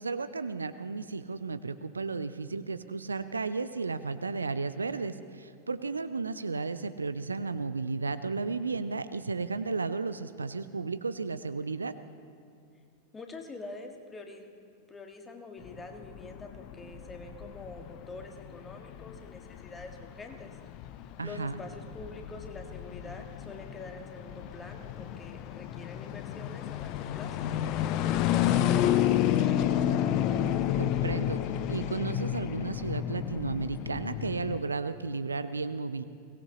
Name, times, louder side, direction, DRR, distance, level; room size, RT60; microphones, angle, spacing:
voice 1, 0.0-11.9 21.2-21.6 30.8-31.4 31.7-36.0, right 4 dB, 75° right, 12 dB, 0.5 m, -33 dB
voice 2, 13.1-14.5 14.9-20.6 21.2-27.5 28.0-30.0, left 2 dB, 15° left, 3 dB, 1.7 m, -46 dB
sound 1, 15.6-34.6, left 11 dB, 40° left, 0.6 m, -31 dB
22.0 x 18.0 x 2.9 m, 2.5 s
figure-of-eight pair, 90°, 0 cm